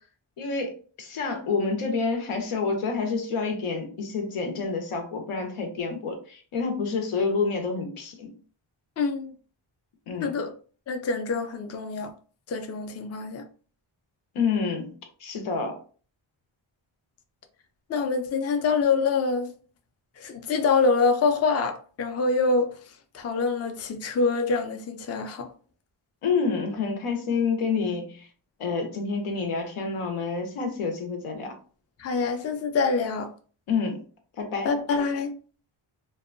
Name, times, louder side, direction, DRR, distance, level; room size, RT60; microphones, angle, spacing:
voice 1, 0.4-0.7 1.0-8.3 10.1-10.4 14.3-14.9 15.2-15.8 26.2-28.3 28.6-31.5 33.7-34.0 34.4-34.7, left 4 dB, 90° left, 0.8 m, -28 dB
voice 2, 9.0-9.3 10.2-10.5 10.9-12.1 12.5-13.5 17.9-19.5 20.2-22.7 23.1-25.5 32.0-33.3 34.6-35.3, left 4 dB, 35° left, 0.4 m, -25 dB
2.6 x 2.2 x 2.5 m
wide cardioid pair, 90°, 49 cm